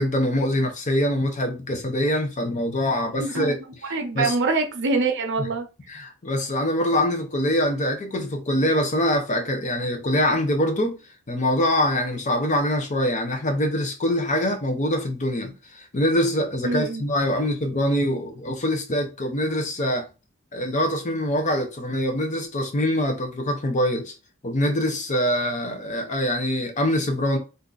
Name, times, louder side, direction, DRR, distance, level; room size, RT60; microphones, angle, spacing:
voice 1, 0.0-3.6 4.2-4.3 5.9-11.0 11.3-20.1 20.5-24.1 24.4-27.4, left 1 dB, 35° left, 0.7 m, -24 dB
voice 2, 3.2-3.5 3.8-5.7 13.5-13.6 16.6-17.0, right 3 dB, 55° right, 0.7 m, -25 dB
2.7 x 2.4 x 3.8 m
head